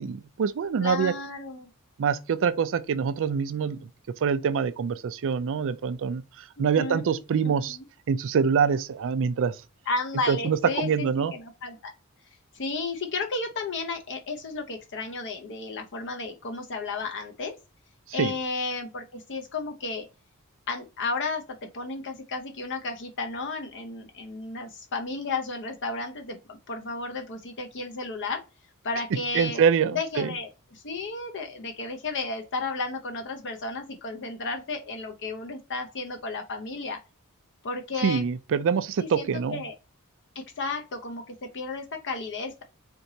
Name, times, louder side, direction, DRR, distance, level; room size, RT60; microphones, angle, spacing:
voice 1, 0.0-1.1 2.0-3.9 4.2-7.8 8.1-9.6 10.3-11.3 18.2-18.3 29.3-30.3 38.0-39.6, right 6 dB, 60° right, 0.4 m, -25 dB
voice 2, 0.8-1.7 6.6-7.1 7.4-7.8 9.9-11.9 12.5-17.6 18.1-20.0 20.7-28.4 28.8-29.6 29.9-37.0 37.6-38.2 39.0-39.7 40.4-42.6, left 3 dB, 55° left, 0.7 m, -33 dB
4.5 x 3.9 x 2.7 m
head